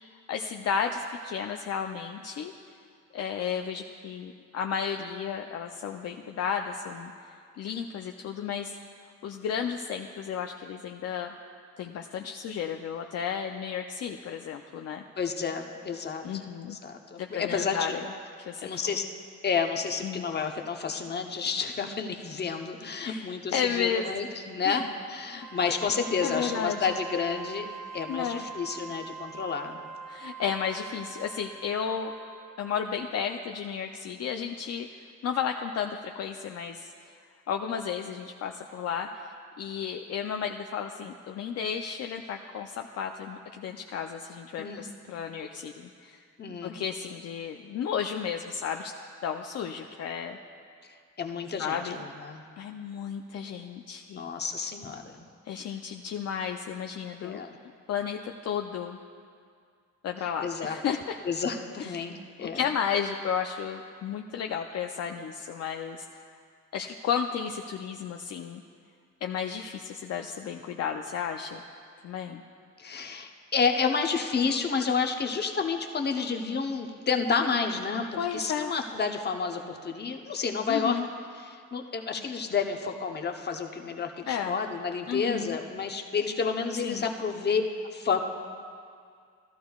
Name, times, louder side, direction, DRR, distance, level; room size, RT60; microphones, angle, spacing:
voice 1, 0.3-2.5 3.1-7.1 7.6-8.8 9.2-11.3 11.8-15.0 16.2-16.8 17.2-18.1 18.5-19.0 20.0-20.3 23.0-24.1 24.6-24.8 25.6-25.8 26.2-26.9 28.1-28.5 30.1-32.1 32.6-34.9 35.2-36.9 37.5-39.1 39.6-46.2 46.6-48.9 49.2-50.4 51.6-52.0 52.6-54.2 55.5-57.4 57.9-59.0 60.0-61.2 61.8-61.9 62.4-66.2 66.7-68.6 69.2-71.6 72.0-72.4 78.2-78.7 80.7-81.1 84.3-84.6 85.1-85.6 86.8-87.1, left 7 dB, 55° left, 3 dB, 0.5 m, -33 dB
voice 2, 15.2-17.9 18.4-19.0 19.4-27.7 27.9-29.8 44.6-44.9 46.4-46.8 51.2-52.4 54.1-55.3 57.2-57.6 60.4-60.8 61.2-62.6 72.8-81.0 81.4-87.6 87.9-88.2, left 5 dB, 35° left, 4 dB, 0.9 m, -30 dB
Wind instrument woodwind instrument, 25.3-32.8, right 6 dB, ahead, 0.5 m, -43 dB
15.0 x 12.5 x 2.4 m, 2.2 s
cardioid pair, 90°, 30 cm